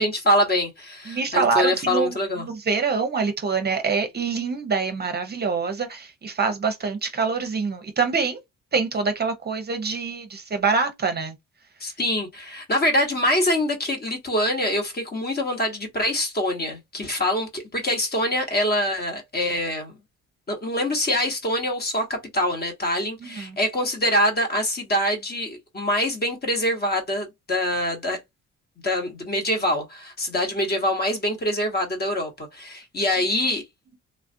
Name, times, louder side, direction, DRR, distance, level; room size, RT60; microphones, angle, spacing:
voice 1, 0.0-2.5 11.8-19.9 20.5-28.2 28.8-33.6, left 1 dB, 30° left, 1.1 m, -24 dB
voice 2, 1.1-8.4 8.7-11.3 23.2-23.6, right 5 dB, 35° right, 0.6 m, -25 dB
3.2 x 2.3 x 2.6 m
cardioid pair, 110°, 30 cm